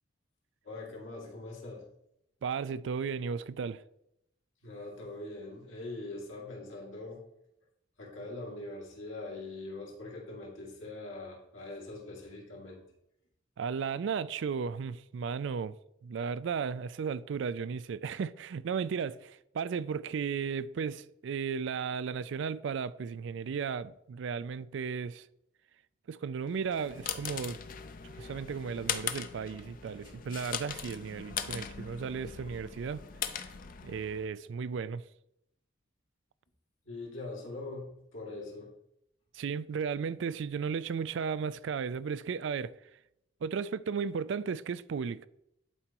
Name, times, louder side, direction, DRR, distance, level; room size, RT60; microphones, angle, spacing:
voice 1, 0.6-1.9 4.6-7.3 8.0-12.9 36.8-38.7, left 2 dB, 80° left, 2.4 m, -42 dB
voice 2, 2.4-3.8 13.6-15.8 16.0-25.3 26.1-27.6 28.0-33.0 33.3-33.4 33.8-35.0 39.3-42.7 43.4-45.3, right 6 dB, 65° right, 0.3 m, -35 dB
sound 1, 26.6-34.3, left 8 dB, 45° left, 0.5 m, -40 dB
11.0 x 4.5 x 3.0 m
head